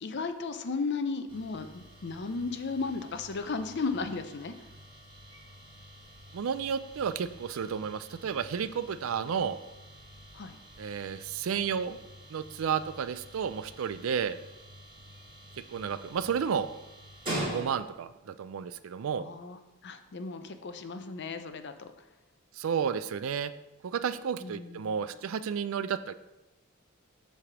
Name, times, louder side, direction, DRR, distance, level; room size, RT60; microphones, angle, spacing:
voice 1, 0.0-4.5 10.3-10.6 19.1-21.9 24.4-25.0, left 4 dB, 55° left, 9 dB, 0.6 m, -35 dB
sound 1, 1.3-18.1, right 1 dB, 25° right, 2.4 m, -45 dB
voice 2, 6.3-9.6 10.8-12.0 12.3-14.4 15.7-16.7 17.5-19.3 22.6-23.5 23.8-26.1, right 7 dB, 70° right, 14 dB, 0.4 m, -32 dB
7.3 x 3.4 x 6.0 m, 1.0 s
head